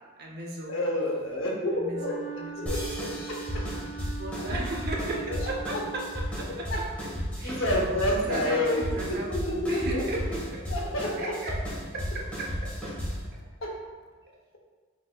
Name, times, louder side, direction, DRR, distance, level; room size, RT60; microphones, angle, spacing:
voice 1, 0.2-0.8 1.7-2.8 4.2-6.9 7.4-7.6 8.0-10.6 11.2-11.6 11.9-13.1, right 2 dB, 45° right, -1 dB, 0.7 m, -36 dB
voice 2, 0.7-2.2 2.6-3.7 4.4-4.6 5.3-5.8 6.5-7.1 7.4-10.3 10.7-11.4 13.6-13.8, left 1 dB, 60° left, -1 dB, 0.8 m, -30 dB
Wind instrument woodwind instrument, 1.9-6.4, right 6 dB, 15° right, 1.2 m, -41 dB
sound 1, 2.7-13.3, equal, 5° left, 1.0 m, -34 dB
5.6 x 3.6 x 2.3 m, 1.4 s
head